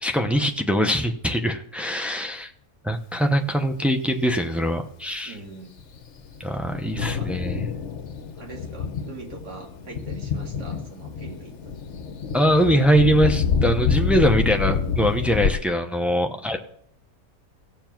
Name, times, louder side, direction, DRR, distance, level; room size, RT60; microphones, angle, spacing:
voice 1, 0.0-2.5 2.8-5.3 6.4-7.6 12.3-16.6, equal, ahead, 4 dB, 0.3 m, -22 dB
voice 2, 5.2-5.7 6.9-7.3 8.4-12.0 16.3-16.6, right 3 dB, 85° right, 1 dB, 2.8 m, -42 dB
Thunder, 5.8-15.5, left 6 dB, 50° left, 1.2 m, -27 dB
17.0 x 7.1 x 6.0 m, 0.70 s
omnidirectional pair, 1.7 m